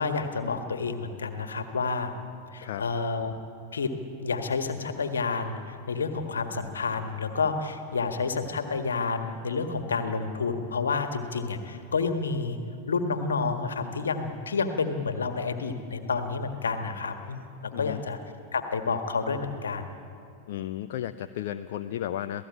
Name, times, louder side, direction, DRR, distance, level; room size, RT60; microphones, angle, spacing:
voice 1, 0.0-2.1 2.5-3.3 3.7-3.9 4.2-12.6 12.9-18.2 18.5-19.9, left 4 dB, 70° left, 7 dB, 1.7 m, -29 dB
voice 2, 17.7-18.0 20.5-22.5, left 12 dB, 55° left, 9 dB, 0.6 m, -34 dB
27.0 x 17.5 x 8.9 m, 2.6 s
figure-of-eight pair, 90°, 0 cm